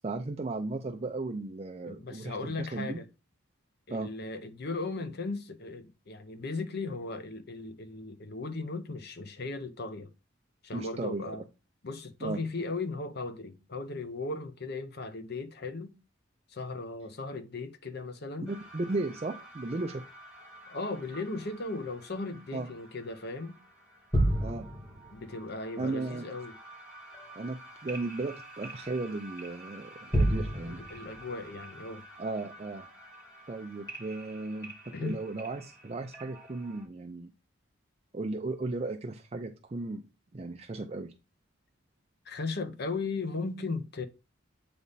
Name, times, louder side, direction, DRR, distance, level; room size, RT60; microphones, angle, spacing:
voice 1, 0.0-3.0 3.9-4.1 10.7-11.3 12.2-12.4 18.5-20.0 22.5-22.7 24.4-24.7 25.8-26.2 27.4-30.8 32.2-32.9 33.5-37.3 38.1-40.0 40.3-41.1, right 2 dB, 30° right, 0.5 m, -35 dB
voice 2, 1.9-3.1 3.9-10.1 10.6-11.4 11.8-16.0 16.5-18.6 20.7-23.6 25.1-26.5 30.8-32.1 34.9-35.2 42.3-44.1, left 3 dB, 55° left, 0.7 m, -37 dB
sound 1, 18.5-36.9, right 1 dB, 15° left, 2.5 m, -37 dB
8.3 x 3.4 x 4.0 m
head